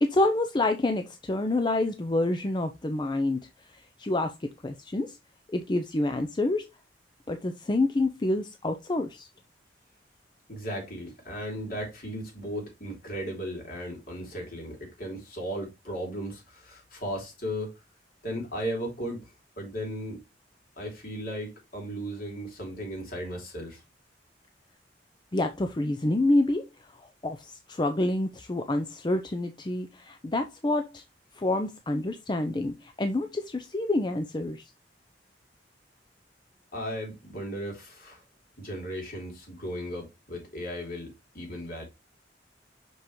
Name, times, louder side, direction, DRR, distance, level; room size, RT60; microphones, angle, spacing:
voice 1, 0.0-3.4 4.0-5.2 5.5-6.7 7.3-9.3 25.3-26.7 27.2-31.0 31.4-34.7, left 2 dB, 25° left, 0.5 m, -27 dB
voice 2, 10.5-17.7 18.2-20.2 20.8-23.8 36.7-38.2 38.6-41.8, equal, 55° left, 3.0 m, -36 dB
6.1 x 5.3 x 3.1 m
head